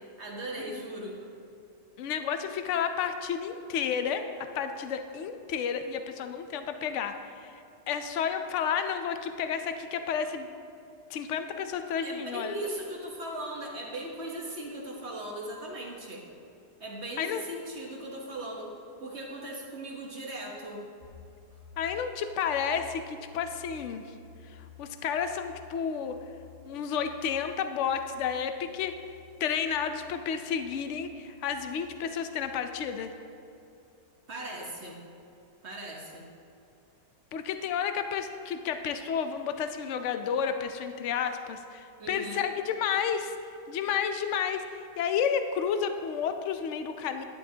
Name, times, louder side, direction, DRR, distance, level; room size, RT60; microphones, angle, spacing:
voice 1, 0.2-1.2 12.0-16.2 16.8-18.7 19.0-20.8 34.3-35.0 35.6-36.3 42.0-42.4, right 1 dB, 45° right, -1 dB, 1.2 m, -38 dB
voice 2, 2.0-10.5 11.1-12.5 17.2-17.4 21.8-24.0 24.5-26.2 26.6-29.0 29.4-33.1 37.3-43.4 43.7-47.2, left 7 dB, 75° left, 8 dB, 0.7 m, -31 dB
sound 1, 21.0-32.9, left 4 dB, 50° left, 1.5 m, -53 dB
11.0 x 10.5 x 2.8 m, 2.6 s
omnidirectional pair, 1.8 m